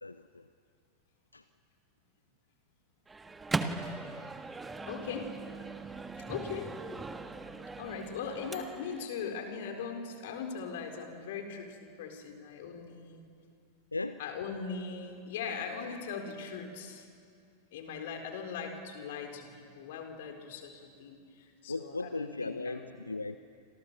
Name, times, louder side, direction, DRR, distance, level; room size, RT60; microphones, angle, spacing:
voice 1, 0.0-0.5 1.3-1.4 13.9-14.2 21.7-23.4, left 3 dB, 80° left, 12 dB, 0.7 m, -37 dB
Microwave oven, 3.1-9.1, right 3 dB, 10° right, 1.6 m, -39 dB
voice 2, 4.9-5.3 6.2-6.7 7.8-13.2 14.2-17.1 17.7-22.9, left 6 dB, 55° left, 5 dB, 4.2 m, -40 dB
30.0 x 27.0 x 6.9 m, 2.3 s
figure-of-eight pair, 90°, 0 cm